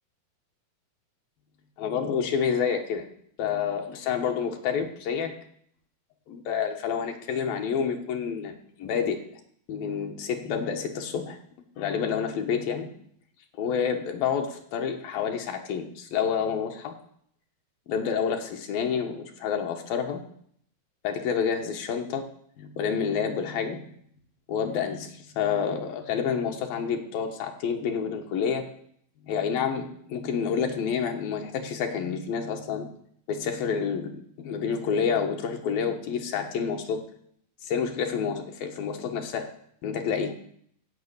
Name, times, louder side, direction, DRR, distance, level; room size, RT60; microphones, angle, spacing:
voice 1, 1.8-3.0 3.4-5.4 6.3-8.5 8.8-9.2 9.7-11.4 11.8-12.9 13.6-16.9 17.9-20.2 21.0-22.3 22.6-23.9 24.5-28.7 29.3-32.9 33.3-37.0 37.6-39.5 39.8-40.3, left 7 dB, 75° left, 3 dB, 2.9 m, -28 dB
14.0 x 5.5 x 8.2 m, 0.66 s
omnidirectional pair, 4.3 m